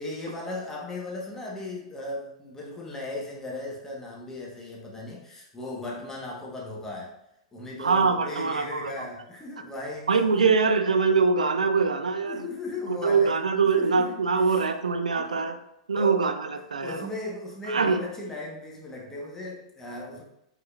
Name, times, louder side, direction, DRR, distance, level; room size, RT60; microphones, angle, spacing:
voice 1, 0.0-7.2 7.5-10.5 12.2-13.4 13.7-14.1 14.5-14.6 15.2-15.5 15.9-16.2 16.8-20.2, left 2 dB, 15° left, -2 dB, 1.3 m, -37 dB
voice 2, 7.8-9.1 10.1-12.5 12.9-15.6 15.9-17.1 17.7-18.0, right 5 dB, 90° right, 8 dB, 0.4 m, -23 dB
5.1 x 4.2 x 2.5 m, 0.82 s
hypercardioid pair, 115°, 4 cm